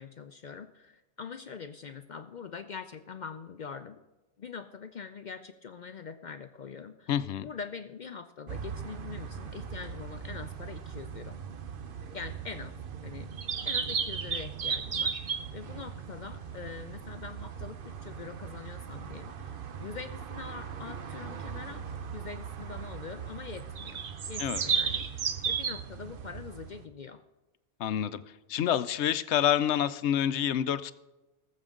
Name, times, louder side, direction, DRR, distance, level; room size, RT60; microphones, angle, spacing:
voice 1, 0.0-4.0 4.4-7.1 7.4-11.4 12.1-12.7 13.0-13.3 13.6-19.3 19.8-21.8 22.1-27.2, left 6 dB, 55° left, 9 dB, 0.6 m, -43 dB
voice 2, 7.1-7.5 24.4-24.6 27.8-28.2 28.5-30.9, left 10 dB, 80° left, 14 dB, 0.9 m, -27 dB
sound 1, 8.5-26.9, right 6 dB, 55° right, 0.9 m, -36 dB
19.5 x 7.6 x 3.7 m, 1.1 s
omnidirectional pair, 1.1 m